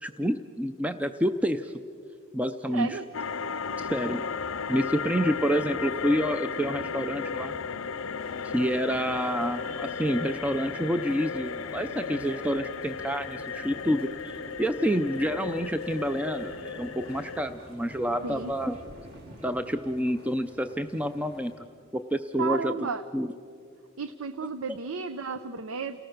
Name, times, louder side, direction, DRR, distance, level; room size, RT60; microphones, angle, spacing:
voice 1, 0.0-1.8 2.3-3.0 3.8-4.2 4.7-7.5 8.4-18.7 19.4-21.7 21.9-23.3, equal, 5° right, 8 dB, 0.4 m, -28 dB
voice 2, 2.7-3.0 18.2-18.5 22.4-23.0 24.0-26.0, right 5 dB, 75° right, 13 dB, 0.7 m, -33 dB
sound 1, 3.1-17.4, left 6 dB, 70° left, 0.6 m, -35 dB
sound 2, 3.7-19.8, equal, 30° right, 1.4 m, -49 dB
sound 3, 8.2-21.6, right 1 dB, 50° right, 2.9 m, -54 dB
29.0 x 18.5 x 6.5 m, 2.5 s
head